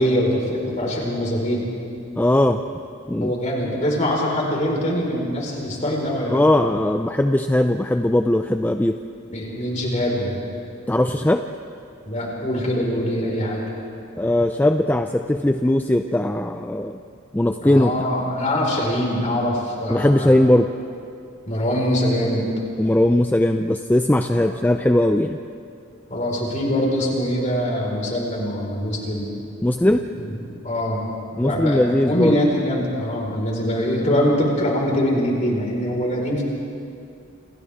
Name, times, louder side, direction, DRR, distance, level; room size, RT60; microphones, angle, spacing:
voice 1, 0.0-1.6 3.2-6.4 9.3-10.3 12.0-13.7 17.6-20.3 21.5-22.5 24.3-24.5 26.1-29.3 30.1-31.1 31.4-36.4, equal, 35° left, -2 dB, 4.8 m, -23 dB
voice 2, 2.2-2.6 3.1-3.3 6.3-9.0 10.9-11.4 14.2-17.0 17.3-17.9 19.9-20.7 22.8-25.4 29.6-30.1 31.4-32.4, left 1 dB, 10° left, 6 dB, 0.5 m, -19 dB
29.5 x 27.0 x 3.6 m, 2.5 s
head